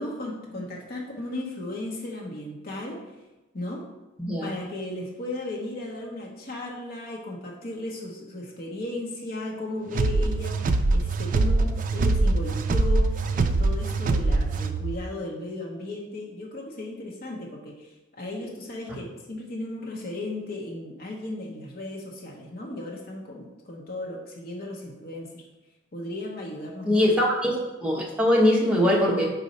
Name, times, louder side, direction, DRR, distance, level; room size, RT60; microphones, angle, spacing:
voice 1, 0.0-3.0 3.5-3.8 4.4-25.4 25.9-27.0, left 1 dB, 45° left, -2 dB, 0.9 m, -35 dB
sound 1, 9.9-15.0, right 2 dB, 40° right, 0.3 m, -23 dB
voice 2, 26.8-29.3, left 1 dB, 5° right, -4 dB, 1.0 m, -22 dB
4.4 x 4.0 x 5.3 m, 1.0 s
head